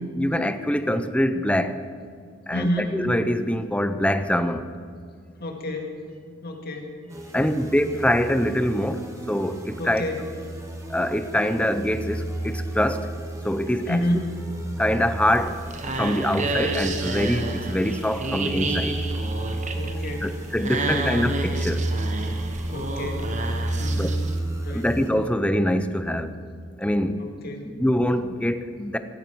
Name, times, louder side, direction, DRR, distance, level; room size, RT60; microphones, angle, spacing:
voice 1, 0.1-1.8 2.5-4.7 7.3-10.0 10.9-13.1 13.4-14.0 14.8-15.6 16.0-19.0 20.2-21.9 23.9-24.1 24.7-26.3 26.8-27.3 27.6-29.0, left 1 dB, 5° left, 10 dB, 0.6 m, -24 dB
voice 2, 2.5-3.0 5.4-6.0 6.4-6.9 7.3-7.6 9.8-10.2 13.9-14.3 19.7-20.3 20.8-21.1 22.7-23.3 23.8-24.2 24.6-24.9 27.2-27.7, left 1 dB, 50° left, 2 dB, 2.1 m, -29 dB
sound 1, 7.1-25.1, right 1 dB, 15° right, 1.6 m, -32 dB
sound 2, 15.3-24.4, right 2 dB, 35° right, 1.1 m, -30 dB
17.5 x 14.5 x 4.7 m, 2.2 s
head